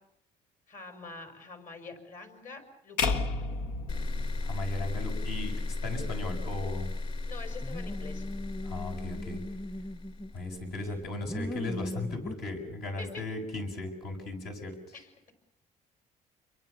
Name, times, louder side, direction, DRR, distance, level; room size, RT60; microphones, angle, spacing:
voice 1, 0.7-3.2 7.2-8.3 13.0-13.1 14.9-15.3, left 3 dB, 50° left, 6 dB, 6.0 m, -46 dB
sound 1, 3.0-5.2, left 4 dB, 90° left, 1.7 m, -32 dB
sound 2, 3.9-11.0, left 2 dB, 35° left, 5.0 m, -35 dB
voice 2, 4.4-6.9 8.6-9.4 10.3-15.0, left 2 dB, 70° left, 2 dB, 7.3 m, -37 dB
sound 3, 7.6-10.4 10.8-12.4, equal, 10° left, 0.9 m, -39 dB
28.5 x 23.5 x 7.1 m, 0.82 s
cardioid pair, 110°, 17 cm